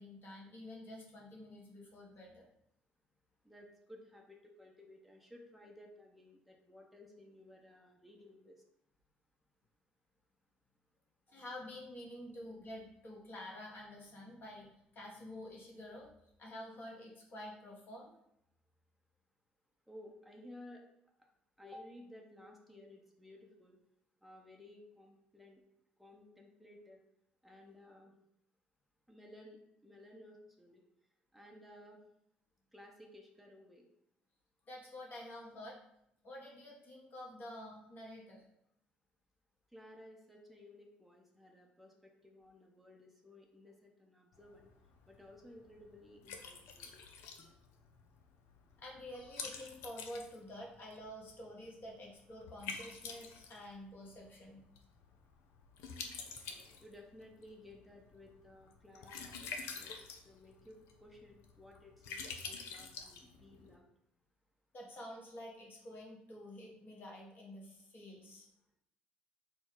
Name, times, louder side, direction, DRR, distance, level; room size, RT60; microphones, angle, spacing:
voice 1, 0.0-2.5 11.3-16.1 16.4-18.1 34.7-35.8 36.2-38.4 48.8-54.6 64.7-68.5, left 1 dB, 45° left, -2 dB, 1.4 m, -49 dB
voice 2, 3.4-8.6 12.4-12.5 19.9-20.8 21.6-23.8 24.2-25.6 26.0-27.0 27.4-28.1 29.1-30.8 31.3-32.0 32.7-33.9 39.7-44.7 45.1-46.9 56.8-60.0 60.2-63.9, left 1 dB, ahead, 0 dB, 0.8 m, -56 dB
Liquid, 44.3-63.8, left 5 dB, 65° left, 0.5 m, -49 dB
4.3 x 2.3 x 4.7 m, 0.76 s
figure-of-eight pair, 50°, 5 cm